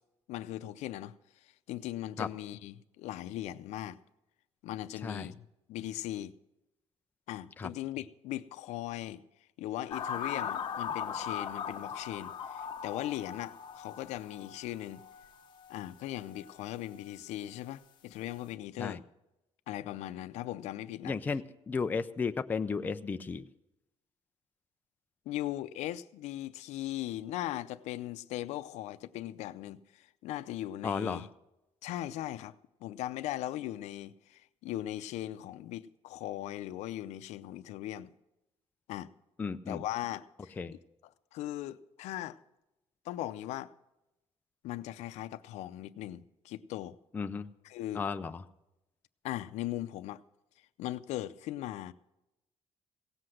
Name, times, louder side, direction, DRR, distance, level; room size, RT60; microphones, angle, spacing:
voice 1, 0.3-4.0 4.6-6.3 7.3-9.2 9.6-15.0 15.7-19.0 19.7-21.2 25.3-31.3 31.8-32.5 32.8-38.1 38.9-39.1 39.7-40.6 41.3-42.4 43.0-43.7 44.6-47.0 47.6-48.0 49.2-50.2 50.8-51.9, left 14 dB, 85° left, 0.6 m, -39 dB
sound 1, 9.9-17.1 17.4-17.7, left 7 dB, 45° left, 0.9 m, -40 dB
voice 2, 21.0-23.5 30.8-31.2 39.4-39.8 40.6-40.8 47.1-47.5 47.9-48.4, left 5 dB, 15° left, 0.4 m, -34 dB
17.0 x 7.8 x 6.3 m
cardioid pair, 180°, 11 cm